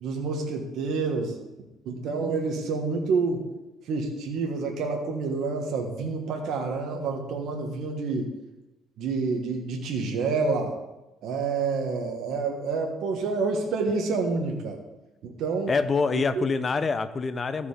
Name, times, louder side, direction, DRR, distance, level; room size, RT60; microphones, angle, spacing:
voice 1, 0.0-1.3 1.8-3.4 3.9-8.3 9.0-10.7 11.2-14.8 15.2-15.7 16.1-16.4, right 4 dB, 65° right, 2 dB, 1.5 m, -28 dB
voice 2, 15.7-17.7, left 4 dB, 30° left, 11 dB, 0.6 m, -26 dB
13.5 x 5.2 x 5.0 m, 1.0 s
cardioid pair, 120°, 0 cm